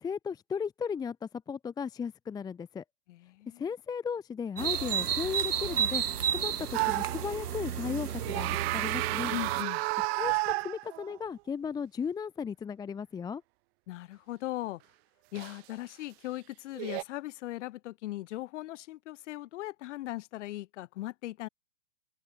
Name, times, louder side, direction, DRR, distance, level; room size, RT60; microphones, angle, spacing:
voice 1, 0.0-2.8 3.6-6.0 6.3-6.5 6.9-9.3 10.2-13.4, left 6 dB, 10° left, 1.0 m, -35 dB
voice 2, 3.1-3.6 9.3-9.8 13.9-14.8 15.3-21.5, left 16 dB, 45° left, 5.0 m, -39 dB
sound 1, 4.6-9.6, right 9 dB, 65° right, 2.0 m, -32 dB
sound 2, 6.7-7.4 8.1-11.2 15.3-15.5 16.8-17.0, right 24 dB, 35° right, 5.6 m, -31 dB
figure-of-eight pair, 120°, 50 cm